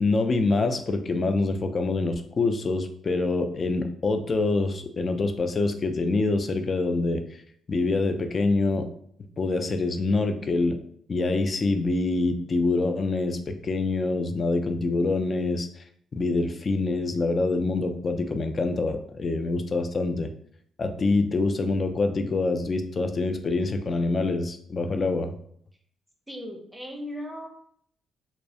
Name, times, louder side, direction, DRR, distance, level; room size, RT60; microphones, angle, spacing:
voice 1, 0.0-7.2 7.7-8.9 9.4-10.8 11.1-15.8 16.1-20.3 20.8-25.3, left 3 dB, 40° left, 7 dB, 0.3 m, -25 dB
voice 2, 26.3-27.5, equal, 5° right, 1 dB, 0.6 m, -37 dB
2.3 x 2.1 x 2.7 m, 0.64 s
cardioid pair, 90°, 0 cm